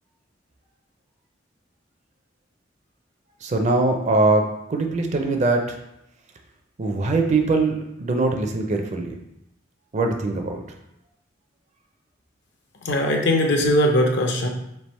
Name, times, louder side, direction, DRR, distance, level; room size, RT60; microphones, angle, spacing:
voice 1, 3.4-5.8 6.8-9.2 9.9-10.6, right 3 dB, 40° right, 4 dB, 0.5 m, -22 dB
voice 2, 12.8-14.5, left 1 dB, 65° left, 2 dB, 0.7 m, -20 dB
3.4 x 2.7 x 4.2 m, 0.81 s
head